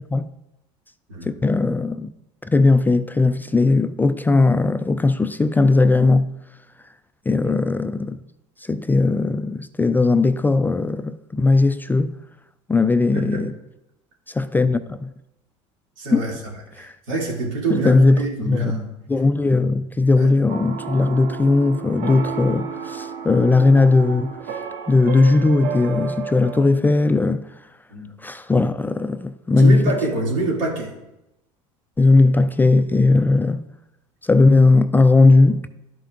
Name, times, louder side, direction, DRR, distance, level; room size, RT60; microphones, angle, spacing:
voice 1, 1.3-2.1 2.4-6.3 7.3-8.2 8.6-12.1 12.7-13.5 14.3-15.1 16.1-16.3 16.8-16.9 17.7-18.7 19.1-24.3 24.9-27.5 28.2-29.8 32.0-33.7 34.2-35.6, left 3 dB, 10° left, 0.3 m, -18 dB
voice 2, 13.1-13.5 16.0-16.4 16.7-18.9 20.1-20.3 27.9-28.1 29.5-30.9, right 2 dB, 85° right, 2.6 m, -26 dB
sound 1, 20.5-26.6, right 6 dB, 65° right, 0.9 m, -32 dB
12.0 x 5.6 x 2.5 m
hypercardioid pair, 85°, 16 cm